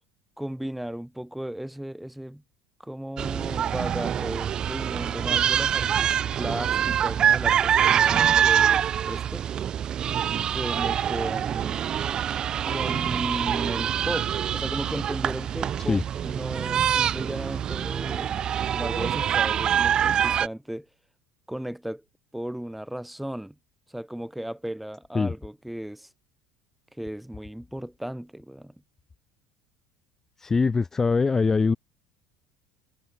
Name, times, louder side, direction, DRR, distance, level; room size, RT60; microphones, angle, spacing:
voice 1, 0.4-2.4 2.8-9.5 10.5-11.9 12.7-18.3 18.7-20.9 21.5-22.0 22.3-23.5 23.9-26.1 27.0-28.7, right 1 dB, 5° right, 1.4 m, -35 dB
sound 1, 3.2-20.5, right 9 dB, 40° right, 0.5 m, -25 dB
voice 2, 30.4-31.8, left 4 dB, 20° left, 0.7 m, -22 dB
supercardioid pair, 110°, 2 cm